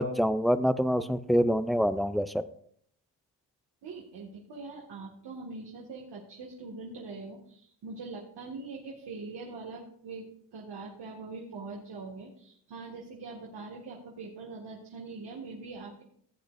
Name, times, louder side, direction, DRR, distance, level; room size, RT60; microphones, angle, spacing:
voice 1, 0.0-2.4, equal, ahead, 13 dB, 0.4 m, -26 dB
voice 2, 3.8-16.0, right 3 dB, 70° right, -2 dB, 2.0 m, -43 dB
16.5 x 8.7 x 2.6 m, 0.62 s
cardioid pair, 105°, 43 cm